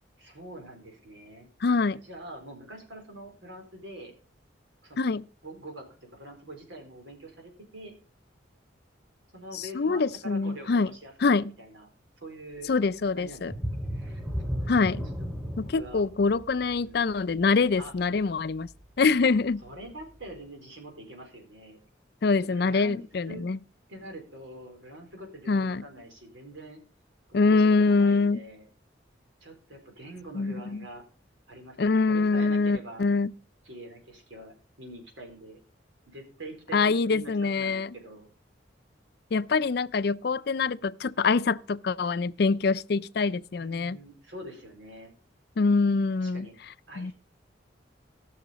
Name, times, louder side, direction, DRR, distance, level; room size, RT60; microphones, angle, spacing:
voice 1, 0.2-1.5 2.0-4.2 4.8-5.1 5.4-7.9 9.3-11.1 11.6-11.9 12.2-12.7 13.2-14.2 14.6-15.0 15.7-16.1 16.6-17.2 17.8-17.9 19.6-21.8 22.4-23.0 23.3-23.4 23.9-26.8 27.3-28.6 29.4-31.0 31.5-33.0 33.6-35.6 36.1-38.3 43.6-45.1 46.2-46.5 46.9-47.1, right 1 dB, 85° right, 4.2 m, -45 dB
voice 2, 1.6-2.0 5.0-5.2 9.5-10.9 11.2-11.5 12.7-13.5 14.7-15.0 15.6-18.7 19.0-19.6 22.2-23.6 25.5-25.9 27.3-28.4 30.3-30.9 31.8-33.3 36.7-37.9 39.3-44.0 45.6-46.5 47.0-47.1, left 4 dB, 55° left, 0.4 m, -25 dB
sound 1, 13.4-18.9 19.3-19.5 20.0-20.1, equal, 10° right, 4.5 m, -35 dB
17.0 x 6.5 x 5.1 m
head